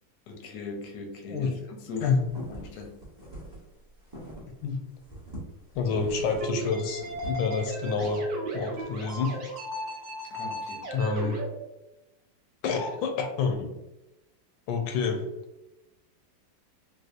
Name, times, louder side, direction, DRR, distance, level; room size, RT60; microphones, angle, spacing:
voice 1, 0.3-2.2 2.5-3.0 10.3-10.9, left 3 dB, 65° left, 2 dB, 0.9 m, -40 dB
sound 1, 2.0-4.7 5.0-8.1, equal, 20° right, 0.6 m, -43 dB
voice 2, 5.7-8.3 8.5-9.3 10.9-11.4 12.6-13.7 14.7-15.2, left 5 dB, 80° left, 4 dB, 1.3 m, -28 dB
sound 2, 6.4-11.5, right 1 dB, 60° right, 1.2 m, -35 dB
4.1 x 2.3 x 2.4 m, 0.95 s
omnidirectional pair, 2.1 m